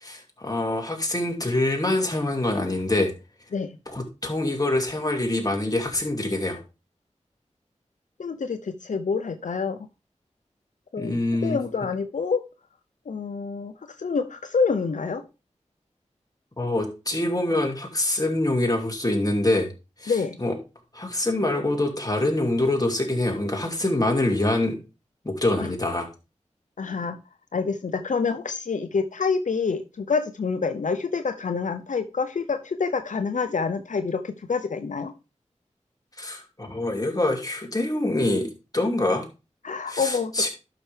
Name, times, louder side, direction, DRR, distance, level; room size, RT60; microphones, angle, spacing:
voice 1, 0.0-3.1 3.9-6.6 11.0-11.6 16.6-19.7 20.0-20.1 20.4-20.5 20.9-24.8 25.2-26.1 36.2-39.2 39.9-40.5, left 1 dB, 30° left, 2 dB, 2.5 m, -25 dB
voice 2, 8.2-9.8 10.9-11.1 11.4-12.4 13.1-13.7 14.0-15.2 20.1-20.4 25.6-25.7 26.8-27.2 27.5-35.1 39.6-40.5, left 5 dB, 85° left, 8 dB, 0.6 m, -27 dB
11.5 x 5.8 x 3.3 m, 0.29 s
wide cardioid pair, 45°, 13 cm